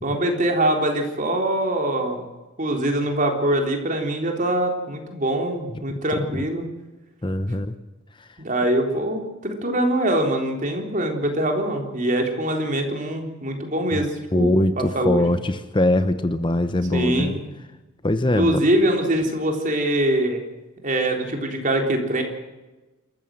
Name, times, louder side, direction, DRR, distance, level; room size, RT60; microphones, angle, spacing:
voice 1, 0.0-2.3 2.6-6.7 8.4-15.2 16.9-17.3 18.4-20.4 20.8-22.2, right 1 dB, 40° right, 3 dB, 3.8 m, -23 dB
voice 2, 6.1-6.4 7.2-7.7 8.2-8.3 13.9-14.0 14.3-17.4 18.0-18.6, left 1 dB, 25° left, 11 dB, 0.9 m, -22 dB
27.5 x 14.5 x 7.7 m, 1.1 s
head